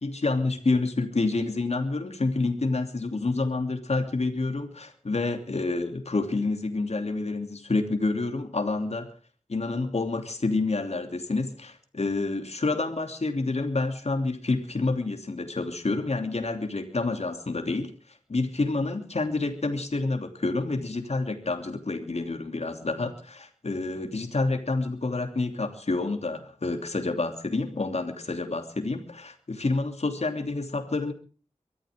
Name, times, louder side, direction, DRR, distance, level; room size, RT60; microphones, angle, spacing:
voice 1, 0.0-9.1 9.5-17.9 18.3-31.1, left 3 dB, 60° left, 5 dB, 3.0 m, -28 dB
23.5 x 14.0 x 3.7 m, 0.39 s
wide cardioid pair, 80°, 12 cm